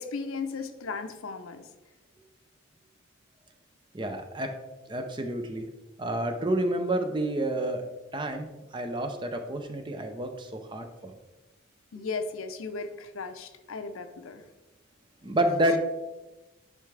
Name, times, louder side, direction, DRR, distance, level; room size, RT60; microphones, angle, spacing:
voice 1, 0.0-1.7 11.9-14.4, left 4 dB, 80° left, 8 dB, 0.6 m, -36 dB
voice 2, 3.9-4.5 4.9-5.6 6.0-7.8 8.1-8.5 8.7-11.1 15.2-15.8, right 1 dB, 20° right, 6 dB, 0.5 m, -29 dB
10.0 x 3.5 x 3.3 m, 1.1 s
head